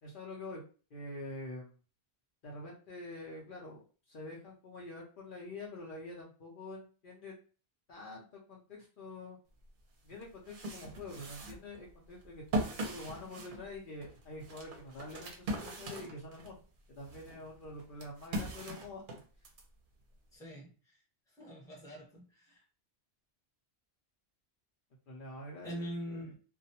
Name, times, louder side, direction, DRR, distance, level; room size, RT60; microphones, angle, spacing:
voice 1, 0.0-0.6 0.9-1.7 2.4-7.4 7.9-9.4 10.0-16.6 16.9-19.0 25.1-26.3, left 2 dB, 55° left, -3 dB, 0.7 m, -46 dB
sound 1, 9.7-9.8 10.2-16.6 17.0-19.6, right 1 dB, 55° right, 0.7 m, -40 dB
voice 2, 20.3-20.7 21.4-22.6 25.6-26.3, equal, 5° left, -4 dB, 0.8 m, -43 dB
2.3 x 2.1 x 2.8 m, 0.37 s
omnidirectional pair, 1.1 m